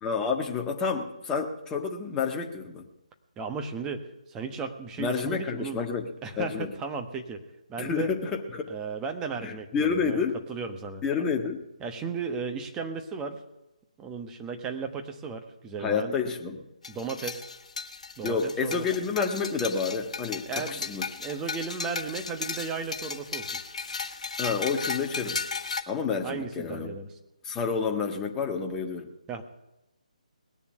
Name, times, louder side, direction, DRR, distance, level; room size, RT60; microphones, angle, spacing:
voice 1, 0.0-2.8 5.0-6.1 6.4-6.7 7.8-8.7 9.4-10.4 11.0-11.6 15.8-16.6 18.2-21.1 24.4-25.4 25.9-27.0 27.4-29.1, left 5 dB, 10° left, 2 dB, 1.5 m, -29 dB
voice 2, 3.4-5.8 6.2-7.4 7.7-8.1 8.7-10.2 10.5-11.0 11.8-13.4 14.0-16.1 16.9-17.5 18.2-18.9 20.5-20.9 21.2-23.6 26.2-27.2 29.3-29.4, right 5 dB, 15° right, 5 dB, 1.2 m, -35 dB
sound 1, 16.8-25.8, left 4 dB, 55° left, 1.7 m, -35 dB
19.5 x 7.1 x 9.5 m, 0.93 s
figure-of-eight pair, 150°, 4 cm